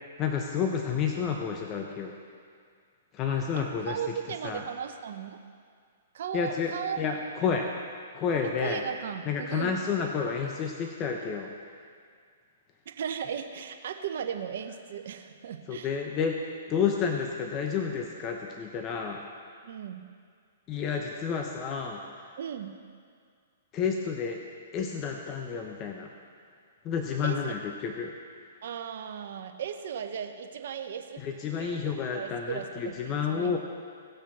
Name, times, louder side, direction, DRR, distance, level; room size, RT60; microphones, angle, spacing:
voice 1, 0.2-2.2 3.1-4.2 4.4-4.6 6.3-7.7 8.1-8.8 9.2-11.5 15.7-19.2 20.7-22.3 23.7-24.4 24.7-26.1 26.8-28.2 31.2-33.6, left 6 dB, 30° left, 2 dB, 0.9 m, -30 dB
voice 2, 3.5-5.4 6.1-7.0 8.4-9.8 12.9-16.0 19.6-20.0 22.4-22.7 27.2-27.5 28.6-31.2 31.6-31.8 32.1-33.6, right 8 dB, 65° right, 6 dB, 0.9 m, -36 dB
17.5 x 6.1 x 4.3 m, 2.1 s
hypercardioid pair, 130°, 0 cm